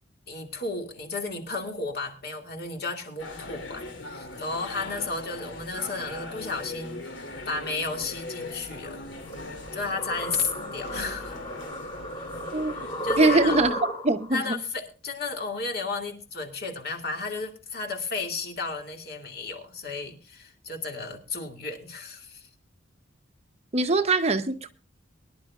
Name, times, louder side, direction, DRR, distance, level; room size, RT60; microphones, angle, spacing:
voice 1, 0.3-9.1 9.7-11.4 12.7-13.6 14.3-22.5, left 3 dB, 50° left, 2.4 m, -33 dB
sound 1, 3.2-13.7, left 2 dB, 70° left, 2.6 m, -40 dB
sound 2, 9.3-14.3, equal, 30° left, 4.8 m, -34 dB
voice 2, 12.5-12.9 13.2-14.6 23.7-24.7, right 2 dB, 35° right, 0.8 m, -23 dB
23.0 x 11.0 x 2.4 m
head